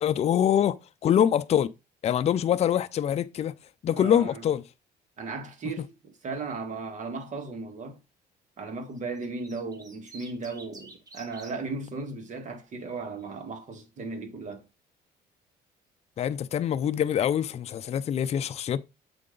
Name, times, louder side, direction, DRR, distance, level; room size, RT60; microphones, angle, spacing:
voice 1, 0.0-0.8 1.0-1.7 2.0-3.5 3.8-4.6 16.2-18.8, left 9 dB, 40° left, 0.4 m, -24 dB
voice 2, 3.9-4.5 5.2-8.0 8.6-14.6, right 3 dB, 45° right, 1.7 m, -36 dB
sound 1, 9.0-11.5 12.8-13.2, right 2 dB, 20° right, 1.5 m, -49 dB
7.7 x 4.8 x 3.8 m
cardioid pair, 110°, 17 cm